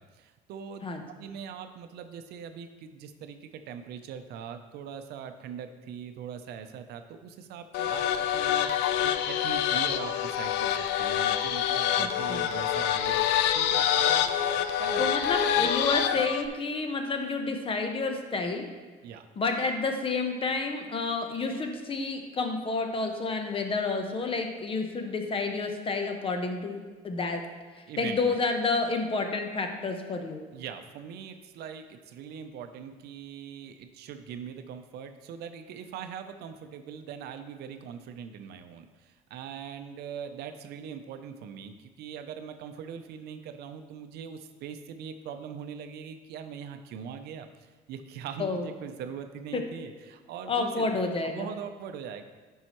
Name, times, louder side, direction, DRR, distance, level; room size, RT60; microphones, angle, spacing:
voice 1, 0.0-0.9 1.2-15.1 15.6-15.7 16.1-16.6 19.0-19.3 27.9-28.4 30.5-52.2, right 7 dB, 65° right, 8 dB, 0.6 m, -41 dB
sound 1, 7.7-16.5, left 10 dB, 75° left, 0.5 m, -26 dB
voice 2, 12.0-12.5 15.0-18.7 19.4-27.4 28.0-30.4 48.4-48.7 49.5-49.6 50.5-51.5, left 3 dB, 30° left, 5 dB, 0.9 m, -30 dB
9.4 x 5.5 x 3.0 m, 1.4 s
supercardioid pair, 90°, 18 cm